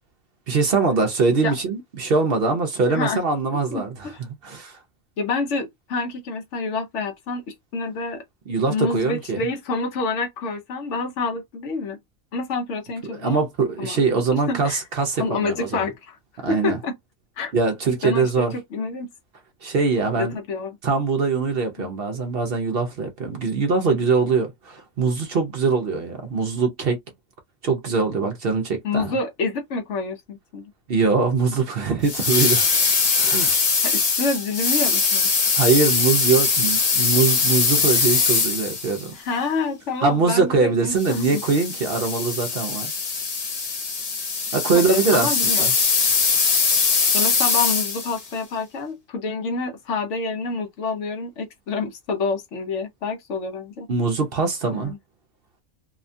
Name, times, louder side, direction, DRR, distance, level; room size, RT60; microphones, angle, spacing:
voice 1, 0.5-4.1 4.4-4.8 8.5-9.4 13.1-15.9 16.4-16.8 17.5-18.5 19.6-20.4 20.8-27.0 27.6-29.1 30.9-32.7 33.2-33.5 35.5-39.2 40.0-42.9 44.5-45.7 53.9-54.9, right 4 dB, 55° right, 0.7 m, -22 dB
voice 2, 2.9-3.2 3.7-4.2 5.2-8.2 8.7-12.0 12.3-13.4 13.8-14.0 14.5-14.8 15.2-16.2 16.5-16.9 17.4-17.5 18.0-19.1 20.2-20.8 21.8-21.9 28.8-30.7 33.8-35.3 39.1-41.4 44.7-45.7 47.1-53.9 54.7-55.0, left 4 dB, 70° left, 1.0 m, -28 dB
sound 1, 32.0-39.1 41.0-48.2, left 5 dB, 40° left, 0.6 m, -21 dB
2.8 x 2.2 x 2.5 m
omnidirectional pair, 1.3 m